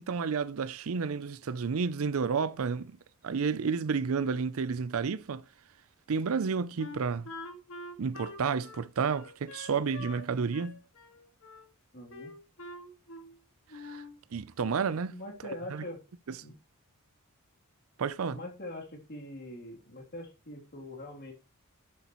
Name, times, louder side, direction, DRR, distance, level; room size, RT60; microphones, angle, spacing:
voice 1, 0.0-3.0 3.2-5.4 6.1-7.3 8.0-10.8 13.7-14.0 14.3-15.1 15.7-15.8 16.3-16.4 18.0-18.4, right 5 dB, 65° right, 0.5 m, -31 dB
Wind instrument woodwind instrument, 6.8-10.3 10.5-11.7 12.1-13.4 13.7-14.2, left 2 dB, 65° left, 1.9 m, -45 dB
voice 2, 11.9-12.3 15.1-16.0 16.4-16.5 18.3-21.3, left 1 dB, 50° left, 3.0 m, -43 dB
10.5 x 8.3 x 3.0 m
head